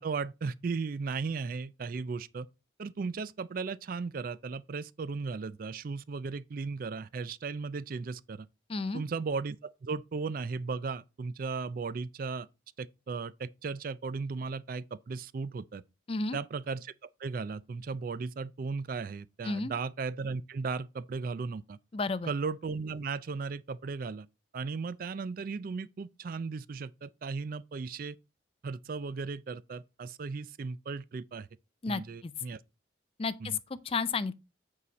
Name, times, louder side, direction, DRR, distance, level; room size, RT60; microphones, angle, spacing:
voice 1, 0.0-2.5 2.8-8.5 8.9-12.5 12.8-15.8 16.3-21.8 22.2-24.3 24.5-28.2 28.6-31.5 31.9-32.6 33.4-33.6, right 4 dB, 45° right, 0.3 m, -36 dB
voice 2, 8.7-9.0 16.1-16.4 19.4-19.7 21.9-22.3 31.8-32.3 33.2-34.3, left 4 dB, 30° left, 0.4 m, -32 dB
8.4 x 4.8 x 4.0 m
head